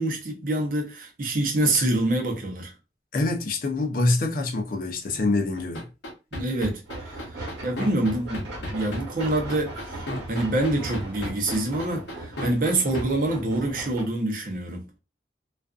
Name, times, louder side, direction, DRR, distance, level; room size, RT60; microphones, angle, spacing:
voice 1, 0.0-2.7 6.3-15.0, right 1 dB, 50° right, 0.7 m, -26 dB
voice 2, 3.1-5.9, left 2 dB, 50° left, 0.5 m, -25 dB
sound 1, 5.6-13.0, left 1 dB, 75° left, 0.8 m, -33 dB
sound 2, 6.8-14.0, right 2 dB, 85° right, 1.1 m, -38 dB
2.4 x 2.4 x 2.3 m
head